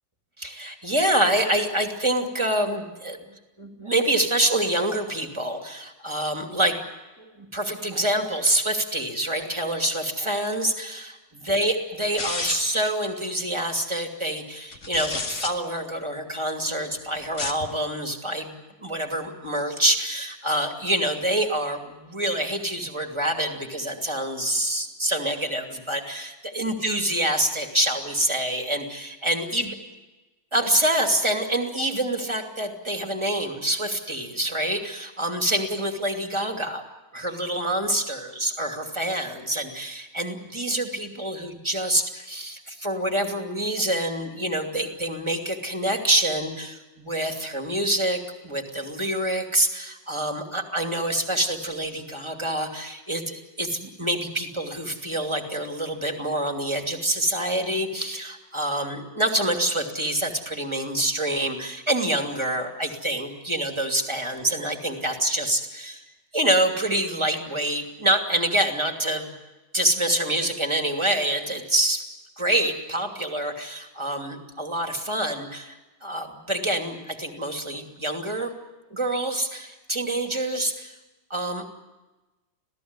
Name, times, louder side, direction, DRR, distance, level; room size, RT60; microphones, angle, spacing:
voice 1, 0.4-6.8 7.2-18.5 18.8-29.7 30.5-36.8 37.1-66.0 66.3-69.3 69.7-72.0 72.4-78.5 78.9-81.0 81.3-81.7, right 1 dB, 15° right, 4 dB, 2.6 m, -26 dB
sound 1, 12.2-12.8 14.7-15.5 17.2-17.7, left 3 dB, 35° left, 2.1 m, -30 dB
27.0 x 17.0 x 9.7 m, 1.1 s
omnidirectional pair, 2.3 m